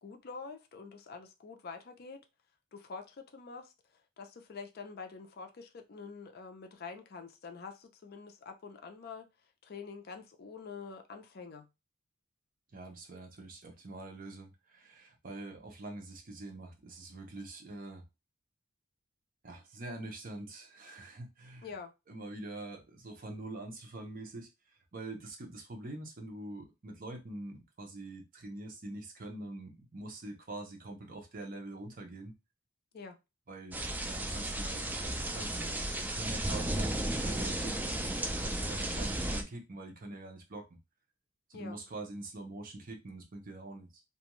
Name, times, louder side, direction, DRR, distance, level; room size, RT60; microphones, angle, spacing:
voice 1, 0.0-2.2 2.7-3.7 4.2-9.3 9.6-11.7 21.6-21.9 32.9-33.2 41.5-41.8, left 5 dB, 50° left, 0.4 m, -46 dB
voice 2, 12.7-18.0 19.4-21.7 22.1-24.5 24.9-32.3 33.5-35.6 35.9-40.8 41.5-44.0, right 2 dB, 45° right, 0.7 m, -45 dB
sound 1, 33.7-39.4, right 1 dB, 10° right, 0.3 m, -34 dB
2.5 x 2.2 x 3.0 m
head